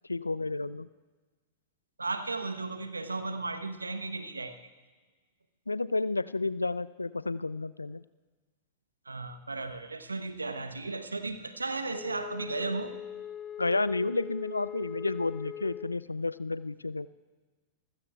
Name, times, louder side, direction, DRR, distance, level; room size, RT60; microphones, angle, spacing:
voice 1, 0.1-0.9 5.7-8.0 13.6-17.1, left 3 dB, 85° left, 17 dB, 0.4 m, -31 dB
voice 2, 2.0-4.6 9.1-12.9, right 3 dB, 85° right, 10 dB, 1.0 m, -35 dB
Wind instrument woodwind instrument, 11.9-16.1, left 9 dB, 25° left, 0.4 m, -41 dB
28.0 x 15.5 x 2.4 m, 1.3 s
figure-of-eight pair, 95°, 0 cm